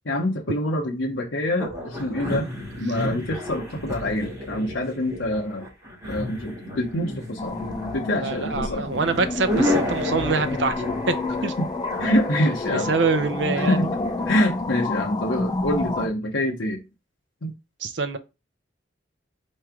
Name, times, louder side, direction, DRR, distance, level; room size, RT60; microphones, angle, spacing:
voice 1, 0.1-2.5 2.8-5.7 6.1-7.6 7.9-8.9 11.6-11.7 12.0-12.9 13.7-13.9 14.3-16.8 17.4-17.5, left 1 dB, 75° left, 0.8 m, -25 dB
sound 1, 1.6-14.3, left 1 dB, 15° right, 2.7 m, -32 dB
sound 2, 7.4-16.1, left 2 dB, 20° left, 0.3 m, -29 dB
voice 2, 8.1-11.1 11.4-11.5 12.7-13.9 17.8-18.2, right 4 dB, 65° right, 0.6 m, -25 dB
4.6 x 3.1 x 3.6 m
head